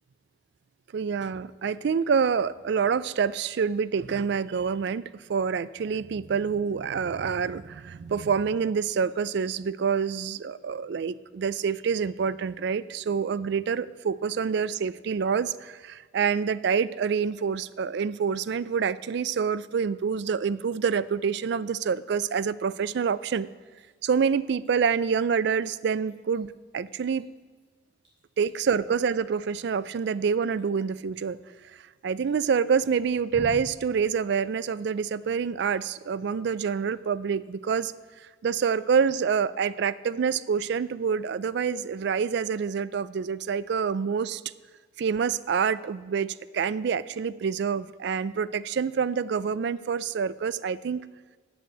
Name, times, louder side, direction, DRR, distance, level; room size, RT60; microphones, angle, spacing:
voice 1, 0.9-23.5 24.0-26.5 26.7-27.3 28.4-31.4 32.0-37.9 38.4-44.4 45.0-51.0, right 6 dB, 60° right, 18 dB, 0.3 m, -27 dB
Drip, 23.7-42.0, equal, 25° right, 3.9 m, -53 dB
8.0 x 7.8 x 7.7 m, 1.4 s
head